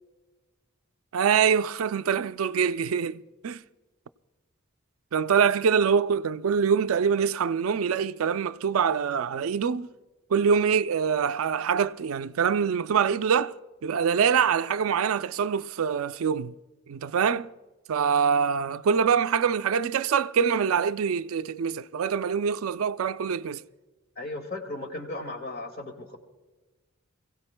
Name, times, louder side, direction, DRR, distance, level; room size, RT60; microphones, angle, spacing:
voice 1, 1.1-3.6 5.1-9.9 10.3-13.5 13.8-16.5 16.9-17.5 17.9-23.6, right 6 dB, 85° right, 0.4 m, -24 dB
voice 2, 24.2-26.2, left 2 dB, 50° left, 2.0 m, -36 dB
26.5 x 16.5 x 2.2 m
head